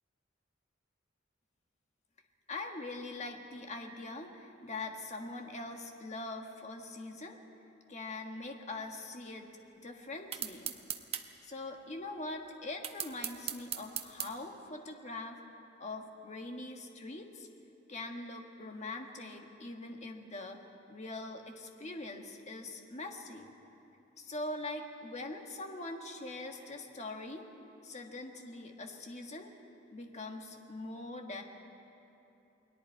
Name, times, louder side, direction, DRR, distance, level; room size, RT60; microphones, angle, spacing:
voice 1, 2.5-7.4 7.9-9.5 9.8-10.8 11.4-15.4 15.8-17.5 17.9-23.5 24.2-27.5 27.8-29.5 29.9-31.4, left 2 dB, 35° left, 3 dB, 1.6 m, -43 dB
sound 1, 10.3-11.3 12.8-14.3, right 9 dB, 30° right, 0.9 m, -37 dB
29.5 x 20.5 x 4.6 m, 2.9 s
head